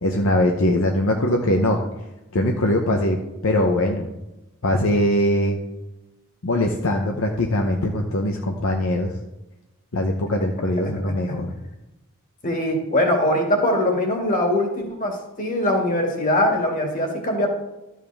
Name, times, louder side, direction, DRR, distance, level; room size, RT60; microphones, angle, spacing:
voice 1, 0.0-1.8 2.3-3.2 3.4-4.1 4.6-5.6 6.4-9.1 9.9-11.5, left 1 dB, 65° left, 2 dB, 0.8 m, -21 dB
voice 2, 12.4-17.5, left 1 dB, 40° left, 1 dB, 2.1 m, -22 dB
12.5 x 7.5 x 3.5 m, 0.99 s
head